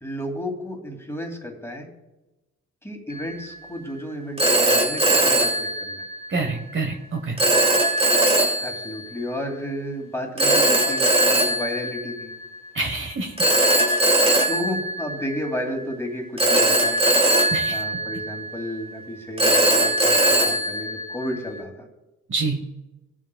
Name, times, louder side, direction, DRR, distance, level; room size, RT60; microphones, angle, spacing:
voice 1, 0.0-1.9 2.8-6.0 8.6-12.3 14.5-17.0 17.7-21.9, equal, 10° left, 1 dB, 2.4 m, -32 dB
Telephone, 3.1-3.4 4.4-6.4 7.4-9.1 10.4-12.6 13.4-15.7 16.4-18.7 19.4-21.6, right 1 dB, 20° right, 1.5 m, -20 dB
voice 2, 6.3-7.4 12.7-13.3 17.5-17.8 22.3-22.7, right 3 dB, 40° right, 4 dB, 1.2 m, -27 dB
21.0 x 7.3 x 2.3 m, 1.0 s
cardioid pair, 90°, 30 cm